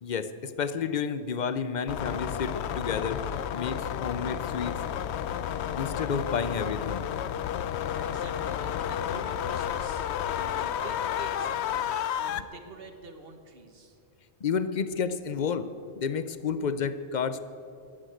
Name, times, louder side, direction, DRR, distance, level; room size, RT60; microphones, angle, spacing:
voice 1, 0.0-3.2 3.5-4.8 5.8-7.0 14.4-17.4, left 6 dB, 50° left, 12 dB, 0.7 m, -31 dB
sound 1, 1.9-12.4, left 9 dB, 75° left, 0.9 m, -31 dB
voice 2, 8.0-10.0 10.4-14.0, right 3 dB, 60° right, 6 dB, 1.5 m, -47 dB
15.0 x 9.9 x 7.9 m, 2.6 s
omnidirectional pair, 1.1 m